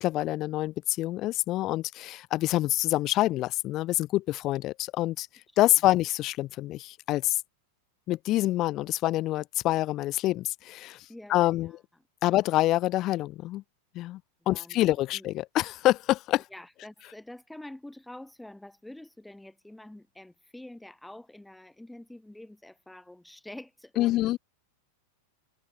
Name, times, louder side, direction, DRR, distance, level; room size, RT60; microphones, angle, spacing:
voice 1, 0.0-5.3 5.6-7.4 8.1-11.0 11.3-11.7 12.2-13.6 13.9-14.2 14.5-16.4 24.0-24.4, left 16 dB, 35° left, 0.9 m, -26 dB
voice 2, 11.1-11.8 14.5-15.3 16.5-24.4, left 1 dB, 5° left, 2.0 m, -47 dB
figure-of-eight pair, 90°, 0 cm